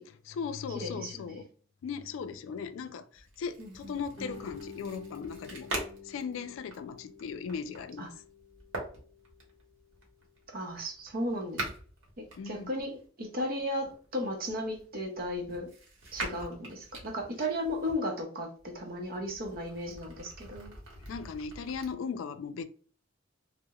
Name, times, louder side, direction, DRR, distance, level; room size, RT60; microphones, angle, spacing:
voice 1, 0.1-1.5 1.8-5.7 6.0-8.1 12.4-12.7 16.4-16.5 21.0-22.6, left 6 dB, 85° left, 0.3 m, -38 dB
voice 2, 0.7-1.4 3.6-3.9 8.0-8.1 10.5-11.6 12.2-15.7 16.1-20.7, equal, 50° right, 0.6 m, -35 dB
sound 1, 3.1-13.1 13.8-18.0 18.6-21.9, right 2 dB, 80° right, 0.9 m, -44 dB
Guitar, 4.2-9.5, left 4 dB, 30° left, 0.7 m, -49 dB
2.8 x 2.0 x 2.2 m
head